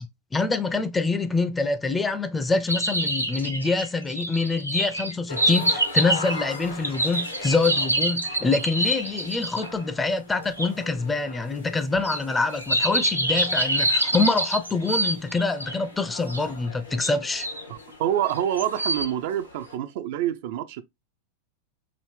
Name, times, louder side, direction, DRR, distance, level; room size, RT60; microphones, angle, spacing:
voice 1, 0.3-17.5, left 3 dB, 10° left, 0.5 m, -25 dB
sound 1, 2.7-9.7 10.6-10.7 12.0-15.8 16.3-16.4 17.0-17.6 18.3-19.1, right 1 dB, 90° right, 0.6 m, -26 dB
sound 2, 5.3-19.8, left 3 dB, 80° left, 1.1 m, -41 dB
voice 2, 17.7-20.8, right 11 dB, 50° right, 0.4 m, -27 dB
5.0 x 2.6 x 3.1 m
figure-of-eight pair, 90°, 0 cm